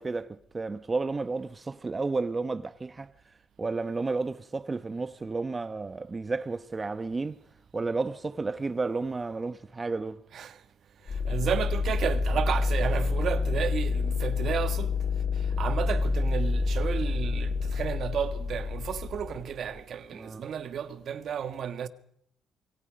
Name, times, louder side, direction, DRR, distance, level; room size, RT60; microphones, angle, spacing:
voice 1, 0.0-3.1 3.6-7.4 7.7-10.2 20.1-20.4, right 3 dB, 25° right, 0.9 m, -32 dB
sound 1, 11.1-19.8, left 4 dB, 40° left, 2.6 m, -28 dB
voice 2, 11.1-14.9 15.4-21.9, right 8 dB, 65° right, 1.6 m, -32 dB
28.0 x 22.0 x 5.2 m
cardioid pair, 90°, 0 cm